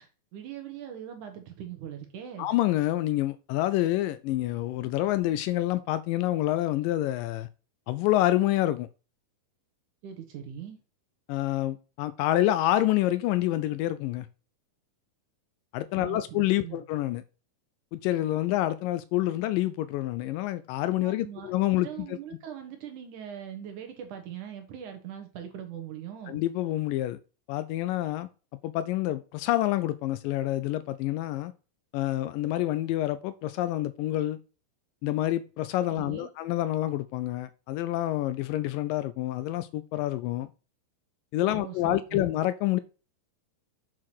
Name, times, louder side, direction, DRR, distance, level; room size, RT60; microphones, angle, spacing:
voice 1, 0.0-2.5 10.0-10.8 15.9-16.8 21.0-26.4 35.9-36.3 41.5-42.3, right 9 dB, 65° right, 2.5 m, -41 dB
voice 2, 2.4-7.5 7.9-8.9 11.3-14.3 15.7-17.2 17.9-22.1 26.3-27.2 27.5-28.3 28.6-31.5 31.9-34.4 35.0-40.5 41.3-42.8, left 14 dB, 85° left, 2.0 m, -27 dB
7.6 x 4.7 x 6.1 m
omnidirectional pair, 4.3 m